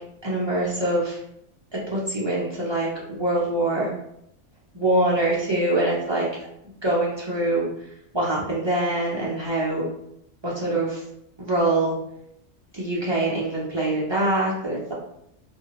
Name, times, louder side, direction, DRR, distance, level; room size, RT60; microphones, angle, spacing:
voice 1, 0.2-1.2 1.9-3.9 4.7-6.3 6.8-7.7 8.1-9.9 10.4-11.0 11.4-11.9 12.7-14.9, right 1 dB, 40° right, -7 dB, 0.4 m, -24 dB
2.7 x 2.7 x 2.9 m, 0.74 s
omnidirectional pair, 1.5 m